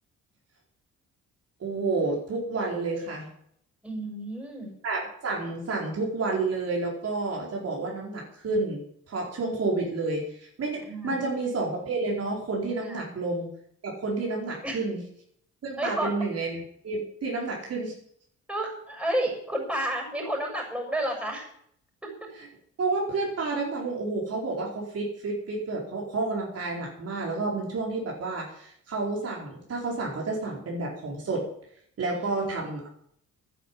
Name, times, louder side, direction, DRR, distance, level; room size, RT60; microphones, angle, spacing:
voice 1, 1.6-3.3 4.8-8.8 9.1-13.5 13.8-15.0 15.6-16.6 16.8-18.0 22.8-31.4 32.0-32.9, right 3 dB, 55° right, -2 dB, 4.6 m, -30 dB
voice 2, 3.8-4.7 10.9-11.2 12.8-13.1 14.6-14.8 15.8-16.1 18.5-21.5 22.0-22.3 32.1-32.3, right 1 dB, 5° right, 1 dB, 7.1 m, -31 dB
11.0 x 10.5 x 8.5 m, 0.68 s
cardioid pair, 90°, 30 cm